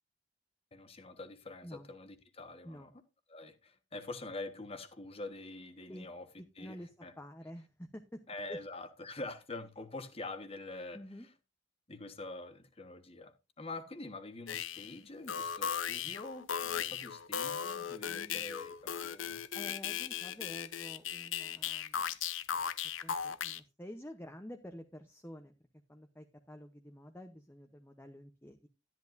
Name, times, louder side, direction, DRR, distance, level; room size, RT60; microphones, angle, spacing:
voice 1, 0.7-2.9 3.3-6.3 6.6-7.1 8.3-11.0 11.9-19.4, left 2 dB, 30° left, 1.3 m, -45 dB
voice 2, 6.4-8.2 8.5-8.6 10.9-11.3 18.0-18.4 19.5-22.1 23.0-25.5 25.9-28.7, equal, 10° left, 0.8 m, -49 dB
sound 1, 14.5-14.9 15.3-23.6, left 8 dB, 80° left, 0.7 m, -37 dB
12.5 x 10.5 x 2.6 m
head